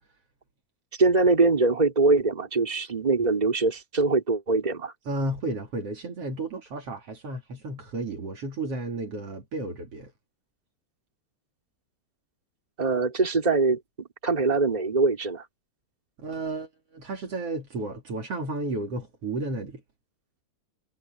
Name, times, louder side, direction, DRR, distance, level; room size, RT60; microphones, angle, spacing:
voice 1, 1.0-4.9 12.8-15.4, right 3 dB, 15° right, 3.2 m, -23 dB
voice 2, 5.1-10.1 16.2-19.8, right 2 dB, 55° right, 3.6 m, -33 dB
omnidirectional pair, 3.3 m